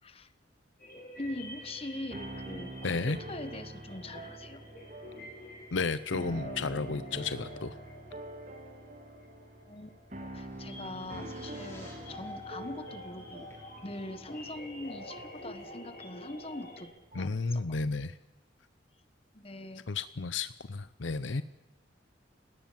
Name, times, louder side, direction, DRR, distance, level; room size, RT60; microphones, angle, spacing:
sound 1, 0.8-16.8, left 1 dB, 50° left, 6.5 m, -48 dB
voice 1, 1.2-4.6 9.7-13.5 13.8-17.8 19.3-19.9, left 1 dB, 30° left, 11 dB, 1.4 m, -42 dB
sound 2, 1.2-17.5, right 1 dB, 40° right, 1.9 m, -46 dB
voice 2, 2.8-3.2 5.7-7.8 17.1-18.2 19.9-21.4, left 4 dB, 80° left, 14 dB, 0.7 m, -32 dB
sound 3, 10.4-15.7, equal, 10° left, 6.4 m, -58 dB
30.0 x 18.0 x 7.5 m, 1.1 s
head